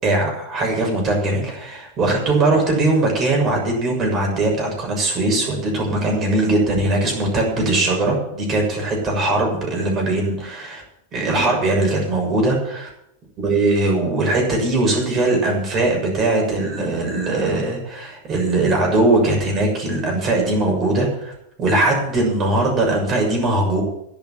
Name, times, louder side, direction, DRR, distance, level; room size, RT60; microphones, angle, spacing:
voice 1, 0.0-10.8 11.1-12.9 13.4-21.3 21.6-23.8, right 2 dB, 30° right, 0 dB, 6.6 m, -20 dB
11.5 x 10.5 x 7.7 m, 0.77 s
figure-of-eight pair, 90°, 0 cm